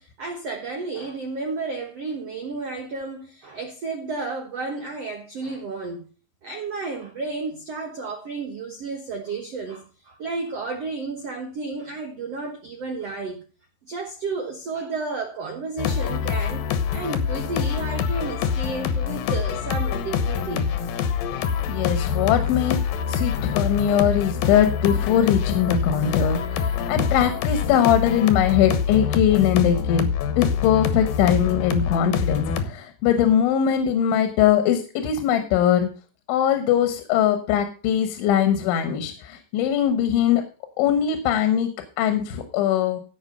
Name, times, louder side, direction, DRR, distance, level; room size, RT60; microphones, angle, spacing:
voice 1, 0.0-6.0 6.4-13.4 13.8-20.8, right 3 dB, 90° right, 1.4 m, -32 dB
sound 1, 15.8-32.7, left 7 dB, 70° left, 2.5 m, -25 dB
voice 2, 21.7-22.8 23.1-30.1 30.4-35.9 36.3-40.4 40.8-41.7 42.0-43.0, left 9 dB, 85° left, 3.6 m, -21 dB
16.0 x 5.7 x 5.4 m
omnidirectional pair, 5.3 m